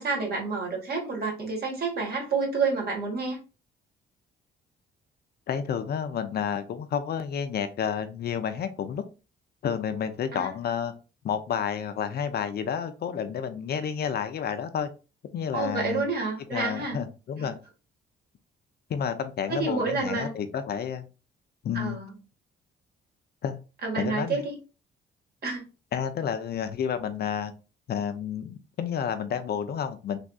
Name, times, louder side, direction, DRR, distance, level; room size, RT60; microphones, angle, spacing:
voice 1, 0.0-3.4 10.3-10.5 15.5-17.0 17.4-17.5 19.5-20.3 21.7-22.1 23.8-24.6 25.4-25.6, right 4 dB, 55° right, -1 dB, 1.5 m, -29 dB
voice 2, 5.5-9.0 9.6-10.9 11.2-14.9 15.3-16.1 16.5-17.6 18.9-21.1 21.6-22.0 23.4-23.6 24.0-24.4 25.9-27.5 27.9-30.2, left 8 dB, 55° left, 9 dB, 0.4 m, -30 dB
3.3 x 2.6 x 2.2 m, 0.32 s
cardioid pair, 90°, 20 cm